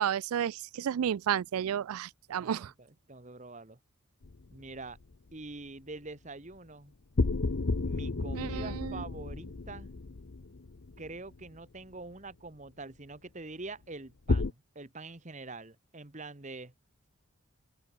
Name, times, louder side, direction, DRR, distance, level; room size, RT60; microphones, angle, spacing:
voice 1, 0.0-2.7 8.4-8.9, right 9 dB, 90° right, 0.4 m, -31 dB
voice 2, 2.4-3.8 4.5-5.0 5.3-6.9 7.7-9.9 11.0-16.7, right 3 dB, 35° right, 1.4 m, -45 dB
sound 1, 4.2-5.2 7.2-11.6 14.3-14.5, left 3 dB, 60° left, 0.7 m, -32 dB
head